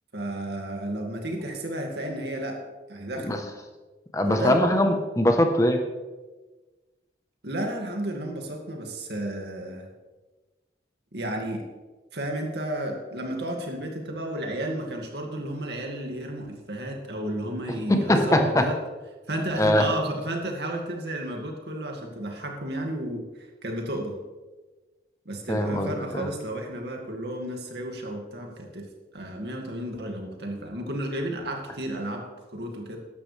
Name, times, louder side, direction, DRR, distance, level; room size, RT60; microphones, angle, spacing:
voice 1, 0.1-2.6 2.9-3.4 4.3-4.6 7.4-9.9 11.1-11.7 12.1-18.8 19.3-24.2 25.3-28.9 29.1-33.0, right 1 dB, 70° right, 2 dB, 2.1 m, -32 dB
voice 2, 4.1-5.8 17.9-18.7 19.6-19.9 25.5-26.3, left 1 dB, 20° left, 5 dB, 1.0 m, -22 dB
14.0 x 11.0 x 3.3 m, 1.2 s
head